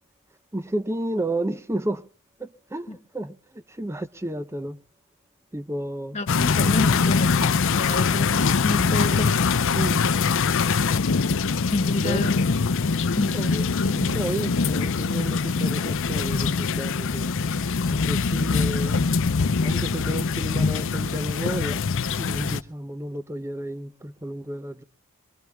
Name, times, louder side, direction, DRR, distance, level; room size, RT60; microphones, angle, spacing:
voice 1, 0.5-2.0 2.4-4.8 5.5-6.2 6.6-6.7 9.7-10.0 12.0-12.3 13.3-17.3 18.0-19.0 19.6-21.8 22.2-24.8, right 1 dB, 10° right, 0.6 m, -32 dB
voice 2, 6.1-9.7 11.7-12.4 13.2-13.4, left 2 dB, 30° left, 1.6 m, -29 dB
sound 1, 6.3-22.6, left 5 dB, 60° left, 0.6 m, -23 dB
23.0 x 22.5 x 2.3 m
head